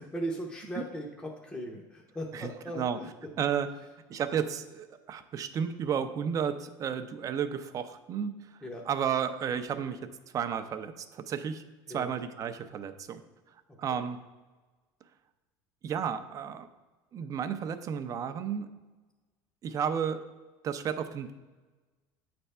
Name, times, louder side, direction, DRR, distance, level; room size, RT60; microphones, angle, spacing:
voice 1, 0.1-3.1 8.6-8.8 11.9-12.1 13.9-14.0, right 1 dB, 10° left, -1 dB, 0.7 m, -38 dB
voice 2, 2.3-3.0 3.4-3.7 4.1-8.3 8.9-10.0 10.3-11.6 11.9-13.2 13.8-14.2 15.8-16.7 17.1-18.7 19.6-20.2 20.6-21.3, right 8 dB, 35° right, 10 dB, 0.5 m, -32 dB
8.2 x 3.4 x 5.4 m, 1.2 s
cardioid pair, 135°, 10 cm